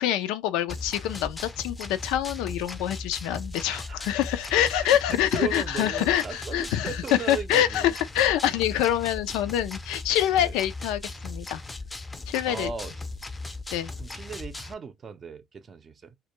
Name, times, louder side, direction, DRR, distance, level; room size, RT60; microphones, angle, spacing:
voice 1, 0.0-7.0 7.3-11.6 12.3-12.7 13.7-13.9, left 11 dB, 90° left, 0.3 m, -26 dB
sound 1, 0.7-14.7, left 2 dB, 20° left, 0.4 m, -38 dB
voice 2, 3.7-4.2 4.8-7.9 10.4-10.6 12.5-13.0 14.0-16.2, right 5 dB, 35° right, 0.4 m, -37 dB
2.1 x 2.1 x 2.9 m
cardioid pair, 110°, 0 cm